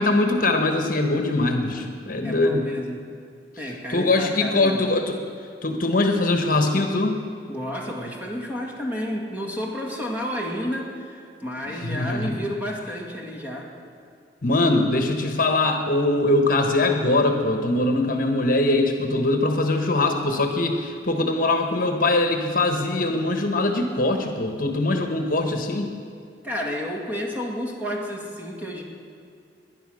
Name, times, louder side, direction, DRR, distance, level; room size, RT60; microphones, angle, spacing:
voice 1, 0.0-2.7 3.9-5.2 5.6-7.2 11.8-12.3 14.4-25.9, left 2 dB, 50° left, 5 dB, 1.2 m, -22 dB
voice 2, 2.2-3.0 3.6-4.8 7.5-13.7 26.4-28.8, equal, 10° right, -1 dB, 2.2 m, -31 dB
19.5 x 11.0 x 6.4 m, 2.3 s
head